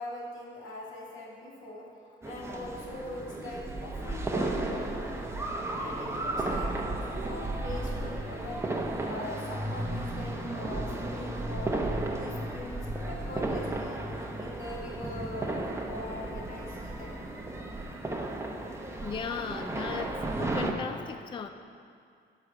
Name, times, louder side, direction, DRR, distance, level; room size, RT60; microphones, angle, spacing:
voice 1, 0.0-1.9 2.2-5.1 5.7-6.7 7.2-8.7 9.0-17.2, left 1 dB, 80° left, -3 dB, 2.1 m, -42 dB
sound 1, 2.2-20.7, right 2 dB, 15° right, 1.0 m, -34 dB
voice 2, 19.0-21.5, left 6 dB, 25° left, 8 dB, 0.4 m, -37 dB
11.0 x 4.9 x 6.8 m, 2.3 s
cardioid pair, 90°, 20 cm